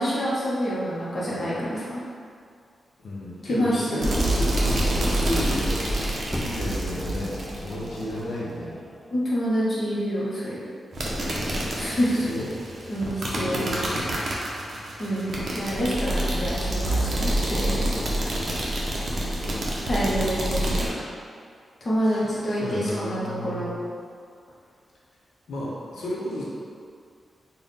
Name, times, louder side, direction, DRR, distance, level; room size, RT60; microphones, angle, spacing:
voice 1, 0.0-2.0 3.4-4.1 9.1-10.6 11.8-12.3 12.9-13.6 15.0-18.0 19.9-21.0 21.8-23.7, equal, 30° left, -8 dB, 0.8 m, -27 dB
voice 2, 3.0-5.8 6.4-8.8 12.0-12.5 13.2-14.1 19.1-19.6 22.0-22.3 22.6-23.8 25.5-26.4, left 1 dB, 75° left, -6 dB, 0.6 m, -33 dB
sound 1, 4.0-8.2 10.9-20.9, right 1 dB, 45° right, 0.5 m, -27 dB
Fire, 6.3-9.1 10.0-10.1, equal, 10° left, 0.4 m, -38 dB
3.5 x 2.1 x 4.0 m, 2.2 s
wide cardioid pair, 170°, 0 cm